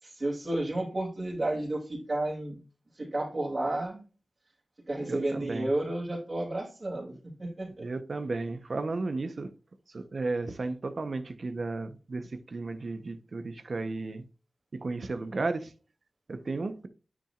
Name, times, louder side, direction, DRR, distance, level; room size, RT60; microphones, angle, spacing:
voice 1, 0.0-2.6 3.0-4.0 4.9-7.1 7.4-7.9, right 1 dB, 45° right, 2.9 m, -32 dB
voice 2, 5.1-5.7 7.8-9.5 9.9-14.2 14.8-15.7 16.3-16.9, right 3 dB, 65° right, 1.0 m, -34 dB
8.9 x 7.3 x 2.5 m
cardioid pair, 50°, 0 cm